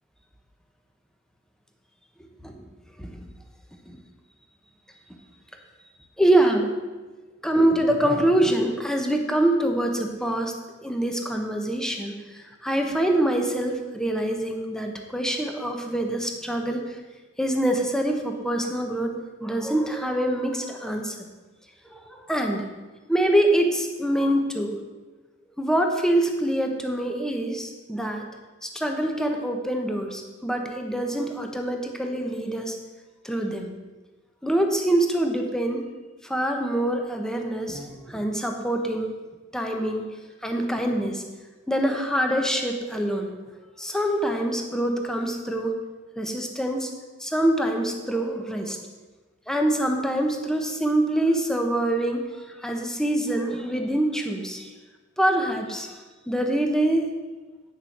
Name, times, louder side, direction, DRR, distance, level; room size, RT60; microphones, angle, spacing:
voice 1, 6.2-6.7 7.4-10.5 10.8-17.0 17.4-21.1 21.9-22.6 23.1-24.8 25.6-28.3 28.6-32.8 33.2-33.7 34.4-35.8 36.2-39.1 39.5-40.1 40.4-41.2 41.7-43.3 43.8-45.7 46.2-46.9 47.2-48.8 49.5-54.7 55.2-56.0 56.3-57.1, right 1 dB, 5° left, 3 dB, 1.1 m, -25 dB
9.5 x 6.7 x 6.0 m, 1.3 s
head